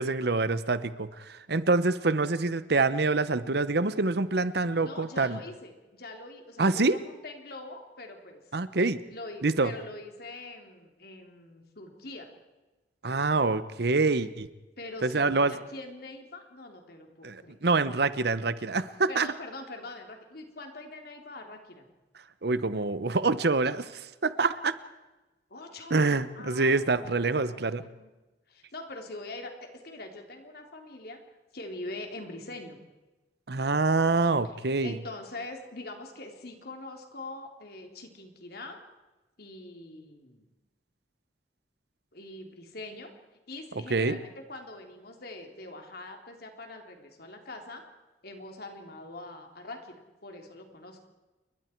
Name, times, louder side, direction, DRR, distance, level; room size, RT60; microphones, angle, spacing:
voice 1, 0.0-5.4 6.6-7.0 8.5-9.0 9.4-9.7 13.0-14.5 15.0-15.5 17.2-19.3 22.4-24.7 25.9-27.8 33.5-34.9 43.9-44.2, right 3 dB, 65° right, 14 dB, 1.0 m, -26 dB
voice 2, 4.8-8.4 9.1-12.3 14.8-17.6 19.1-21.9 25.5-28.1 28.5-31.2 31.5-32.8 34.8-38.8 39.4-40.5 42.1-43.1 43.5-47.8 48.2-51.1, left 2 dB, 60° left, 3 dB, 3.5 m, -43 dB
28.5 x 23.0 x 4.6 m, 1.1 s
head